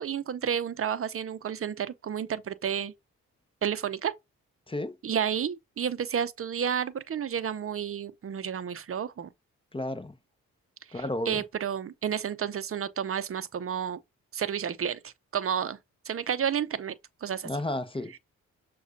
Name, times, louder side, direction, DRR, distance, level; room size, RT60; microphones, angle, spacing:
voice 1, 0.0-2.9 3.6-4.1 5.0-9.3 10.9-14.0 14.3-15.8 16.1-16.9 17.2-17.5, right 8 dB, 40° right, 0.6 m, -31 dB
voice 2, 4.7-5.0 9.7-10.1 10.9-11.4 17.4-18.2, left 1 dB, 15° left, 0.7 m, -32 dB
6.2 x 2.4 x 2.5 m
supercardioid pair, 45°, 37 cm